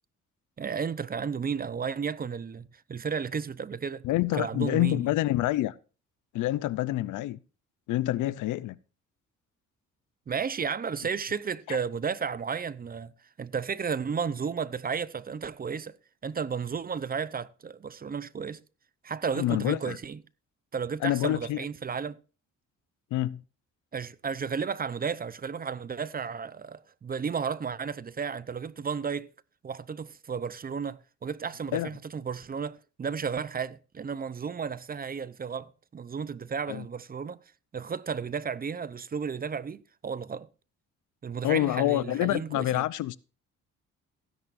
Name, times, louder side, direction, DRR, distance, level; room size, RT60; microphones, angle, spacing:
voice 1, 0.6-4.0 4.3-5.0 10.3-13.1 13.4-16.0 16.2-18.6 19.0-20.2 20.7-22.2 23.9-29.3 29.6-37.4 37.7-40.5 41.2-42.9, right 6 dB, 30° right, 0.6 m, -33 dB
voice 2, 4.0-5.7 6.3-7.4 7.9-8.8 11.7-11.8 19.3-20.0 21.0-21.6 23.1-23.4 31.7-31.9 36.7-36.8 41.4-43.2, left 15 dB, 85° left, 0.6 m, -27 dB
15.5 x 10.5 x 2.6 m
cardioid pair, 90°, 30 cm